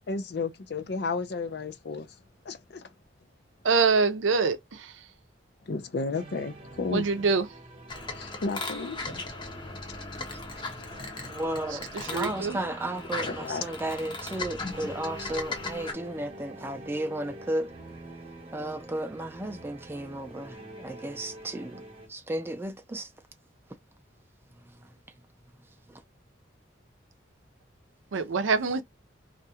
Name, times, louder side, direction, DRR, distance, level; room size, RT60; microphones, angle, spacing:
voice 1, 0.0-2.2 2.4-2.9 5.7-7.1 8.1-9.0 13.2-13.8, left 4 dB, 60° left, 0.5 m, -33 dB
voice 2, 3.6-5.1 6.9-7.6 11.7-12.6 28.1-28.8, right 4 dB, 90° right, 0.5 m, -26 dB
sound 1, 6.1-22.1, right 1 dB, 30° right, 0.9 m, -47 dB
sound 2, 7.9-15.9, left 3 dB, 25° left, 0.7 m, -37 dB
voice 3, 11.3-17.7 18.5-21.8 22.1-23.1, right 1 dB, 10° right, 0.4 m, -34 dB
2.5 x 2.2 x 2.8 m
head